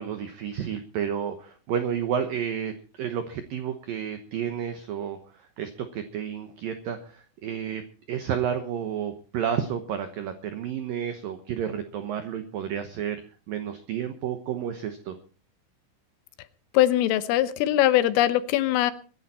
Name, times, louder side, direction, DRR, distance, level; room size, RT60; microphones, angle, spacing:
voice 1, 0.0-7.8 8.1-13.2 13.5-15.2, right 8 dB, 80° right, 9 dB, 2.0 m, -31 dB
voice 2, 16.7-18.9, left 13 dB, 85° left, 13 dB, 3.6 m, -21 dB
23.5 x 10.5 x 4.3 m, 0.36 s
omnidirectional pair, 5.7 m